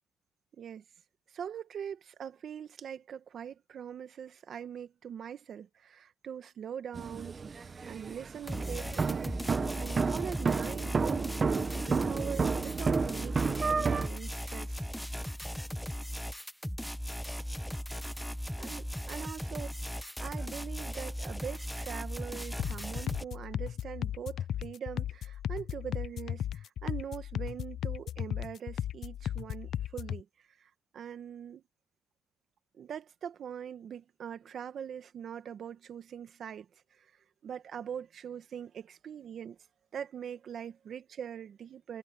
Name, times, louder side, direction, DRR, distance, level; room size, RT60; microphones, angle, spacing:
voice 1, 1.3-14.9 18.6-19.7 20.0-31.6 32.7-37.1 37.4-39.6 39.9-42.0, right 8 dB, 60° right, 1.8 m, -42 dB
sound 1, 6.9-14.1, right 5 dB, 35° right, 1.4 m, -31 dB
sound 2, 8.5-23.2, equal, ahead, 1.5 m, -38 dB
sound 3, 22.6-30.2, left 10 dB, 65° left, 0.5 m, -36 dB
cardioid pair, 90°, 0 cm